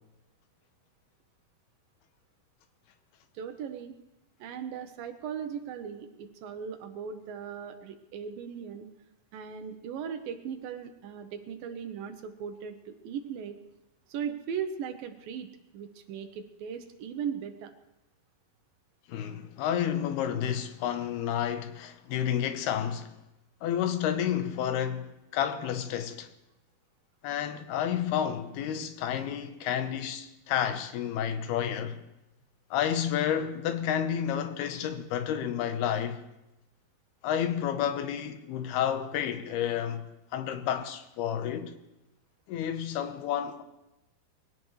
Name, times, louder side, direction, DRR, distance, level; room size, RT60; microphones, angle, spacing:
voice 1, 3.3-3.9 4.4-8.9 9.3-13.6 14.1-15.5 15.7-17.7, right 7 dB, 75° right, 2.4 m, -38 dB
voice 2, 19.1-23.2 23.6-26.3 27.2-32.0 32.7-36.2 37.2-41.7 42.5-43.6, left 9 dB, 85° left, 3.0 m, -30 dB
22.0 x 17.0 x 3.2 m
omnidirectional pair, 4.4 m